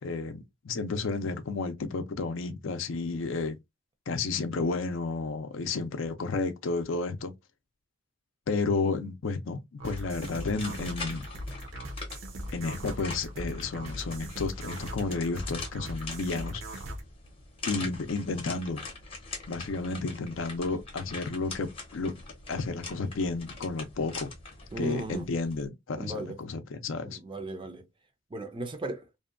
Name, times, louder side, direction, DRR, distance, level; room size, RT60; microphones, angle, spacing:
voice 1, 0.0-3.6 4.1-7.3 8.5-11.3 12.5-16.8 17.6-18.8 19.5-22.1 22.5-24.3 24.8-27.2, left 3 dB, 70° left, 0.5 m, -32 dB
sound 1, 9.8-17.0, equal, 70° right, 0.6 m, -39 dB
sound 2, 9.9-25.7, left 3 dB, 25° left, 0.7 m, -43 dB
voice 2, 24.7-25.3 26.0-26.4 27.0-27.9 28.3-29.1, right 1 dB, 25° right, 0.4 m, -36 dB
2.6 x 2.2 x 2.4 m
head